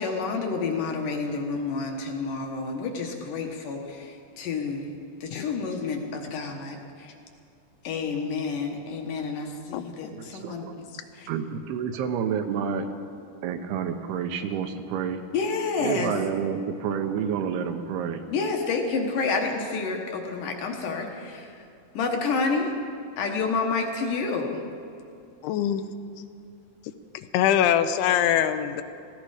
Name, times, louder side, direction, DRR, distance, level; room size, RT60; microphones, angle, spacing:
voice 1, 0.0-7.1 7.8-10.7 10.9-11.3 15.3-16.1 18.3-21.7 21.9-22.8 23.2-24.6, left 4 dB, 65° left, 2 dB, 2.5 m, -29 dB
voice 2, 10.1-10.8 11.3-12.9 13.4-15.2 15.8-18.2, right 7 dB, 85° right, 7 dB, 2.9 m, -29 dB
voice 3, 25.4-25.8 27.3-28.8, left 10 dB, 85° left, 10 dB, 2.7 m, -22 dB
18.0 x 15.5 x 4.9 m, 2.6 s
omnidirectional pair, 4.6 m